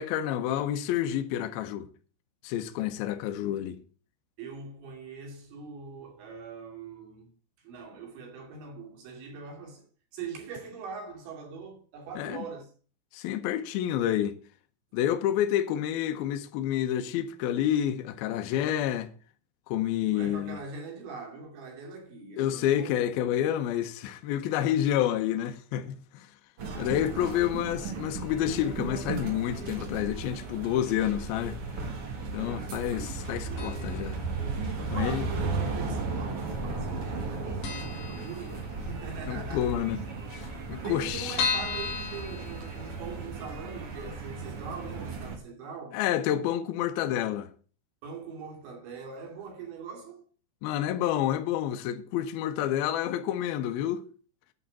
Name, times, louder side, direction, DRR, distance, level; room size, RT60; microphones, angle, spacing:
voice 1, 0.0-1.9 2.4-3.8 12.2-12.5 13.1-14.4 14.9-19.1 19.7-20.6 22.4-26.3 26.8-31.6 32.3-34.2 34.9-35.2 39.3-40.0 40.3-41.4 45.9-47.5 50.6-54.0, left 11 dB, 80° left, 2.1 m, -29 dB
voice 2, 4.4-7.3 7.6-12.7 20.1-23.1 27.0-27.7 34.9-39.7 40.8-46.0 48.0-50.2, right 5 dB, 70° right, 4.8 m, -42 dB
sound 1, 26.6-45.4, right 3 dB, 55° right, 1.6 m, -35 dB
sound 2, 33.6-34.1 34.4-34.5 35.4-36.1 36.4-36.5 36.8-36.9 37.3-37.4 37.6-39.0 39.3-39.4 39.7-39.8 40.0-40.1 40.6-43.2 43.7-43.8 44.1-44.2, left 5 dB, 60° left, 3.9 m, -34 dB
11.0 x 4.4 x 7.4 m
omnidirectional pair, 5.4 m